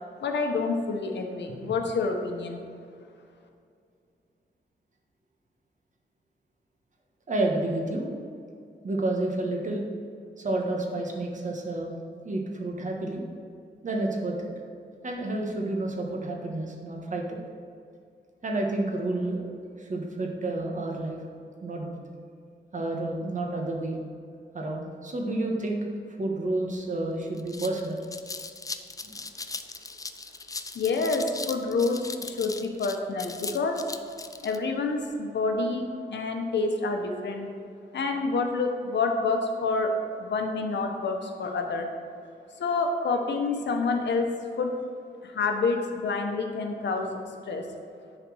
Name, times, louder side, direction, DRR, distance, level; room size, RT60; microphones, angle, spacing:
voice 1, 0.2-2.6 30.7-33.8 34.4-37.5 37.9-41.9 42.6-44.3 44.6-44.8 45.2-47.7, left 3 dB, 80° left, 3 dB, 1.1 m, -28 dB
voice 2, 7.3-8.1 8.8-9.8 10.4-11.9 12.2-13.2 13.8-14.5 15.0-17.4 18.4-19.4 19.8-21.2 21.6-21.9 22.7-24.0 24.5-25.9 26.2-28.0 29.0-29.1, right 2 dB, 45° right, 0 dB, 1.4 m, -30 dB
sound 1, 26.8-26.9 27.2-34.6, left 3 dB, 20° left, 0.4 m, -38 dB
10.0 x 4.3 x 6.3 m, 2.4 s
wide cardioid pair, 125°, 18 cm